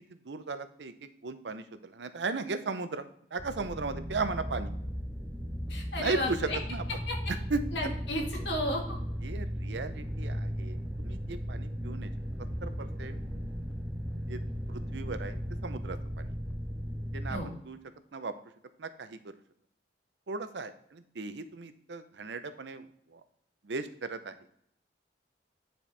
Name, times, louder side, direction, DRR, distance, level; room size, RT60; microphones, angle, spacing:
voice 1, 0.2-0.9 1.2-4.7 6.0-6.8 7.3-7.6 9.2-12.1 12.6-13.2 14.3-14.4 14.7-16.3 17.1-17.8 18.1-18.3 18.8-19.2 20.3-23.2 23.6-24.4, right 3 dB, 80° right, 10 dB, 0.7 m, -36 dB
sound 1, 3.4-17.4, equal, 5° right, 0.8 m, -36 dB
voice 2, 5.7-6.6 7.1-7.2 7.7-9.0 17.3-17.5, left 1 dB, 80° left, 1 dB, 1.9 m, -33 dB
9.8 x 4.5 x 3.3 m, 0.68 s
head